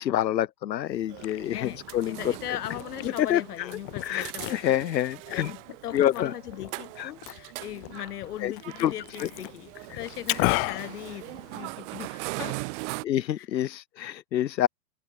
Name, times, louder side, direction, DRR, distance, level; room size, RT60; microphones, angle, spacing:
voice 1, 0.0-2.2 3.2-3.7 4.0-5.5 5.9-6.3 7.0-7.1 8.4-8.5 8.8-8.9 9.2-9.3 9.9-10.0 10.3-10.6 13.0-14.7, left 11 dB, 85° left, 0.9 m, -27 dB
Liquid, 0.9-11.9, left 35 dB, 25° left, 0.8 m, -36 dB
sound 1, 1.1-13.0, right 26 dB, 45° right, 5.7 m, -41 dB
voice 2, 1.5-12.6 13.4-13.5, left 12 dB, 65° left, 5.6 m, -39 dB
hypercardioid pair, 130°, 49 cm